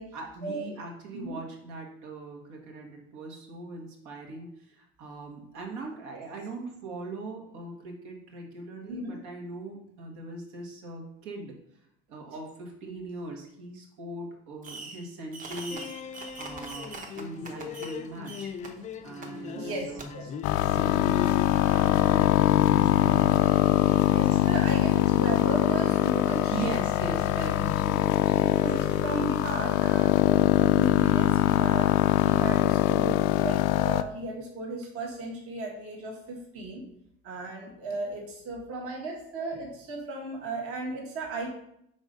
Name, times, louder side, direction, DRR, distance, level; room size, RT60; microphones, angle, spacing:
voice 1, 0.1-11.6 12.1-18.5 19.0-20.4 20.7-24.1 24.3-24.8 26.5-28.7, right 2 dB, 70° right, 1 dB, 1.9 m, -40 dB
Fireworks, 14.6-15.1 15.3-18.0 18.2-18.7 19.2-19.3 20.0-20.1, right 3 dB, 25° right, 0.8 m, -42 dB
sound 1, 15.7-29.7, left 7 dB, 25° left, 0.4 m, -41 dB
voice 2, 19.5-20.3 24.1-26.7 28.6-31.9 32.2-36.8 37.2-41.5, right 2 dB, 45° right, -1 dB, 1.5 m, -35 dB
sound 2, 20.4-34.0, left 14 dB, 90° left, 0.5 m, -23 dB
6.1 x 4.1 x 5.2 m, 0.74 s
cardioid pair, 150°, 31 cm